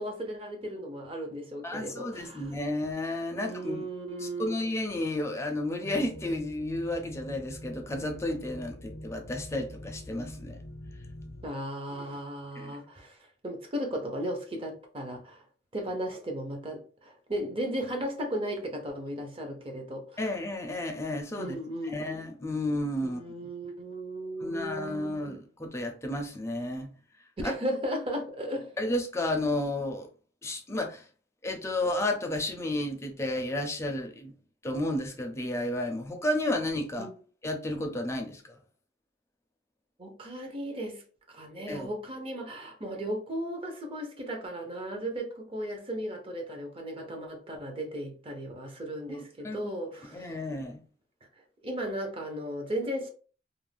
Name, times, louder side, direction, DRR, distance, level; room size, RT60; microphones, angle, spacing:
voice 1, 0.0-2.4 3.3-4.6 11.4-13.2 13.4-15.4 15.7-20.2 21.4-22.1 23.0-25.1 27.4-28.7 37.0-37.1 40.0-41.0 41.3-50.4 51.6-53.1, equal, 30° right, 0.6 m, -36 dB
voice 2, 1.6-3.8 4.2-10.6 12.6-12.8 20.2-21.6 21.8-23.5 24.4-26.9 27.4-27.5 28.8-30.1 30.4-31.1 31.4-34.3 34.6-37.1 37.4-38.5 41.7-41.9 49.1-49.7 50.1-50.8, left 1 dB, 15° left, 0.4 m, -32 dB
sound 1, 5.8-11.5, equal, 85° left, 0.5 m, -44 dB
2.5 x 2.0 x 3.3 m
head